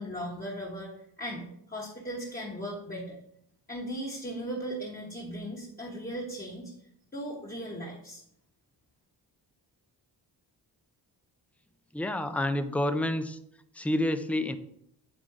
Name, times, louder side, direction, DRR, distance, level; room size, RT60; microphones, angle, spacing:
voice 1, 0.0-3.2 3.7-6.7 7.1-8.2, equal, 20° left, -5 dB, 1.1 m, -37 dB
voice 2, 11.9-13.4 13.8-14.6, left 1 dB, 5° left, 9 dB, 0.3 m, -28 dB
8.8 x 3.7 x 4.7 m, 0.72 s
wide cardioid pair, 155°, 43 cm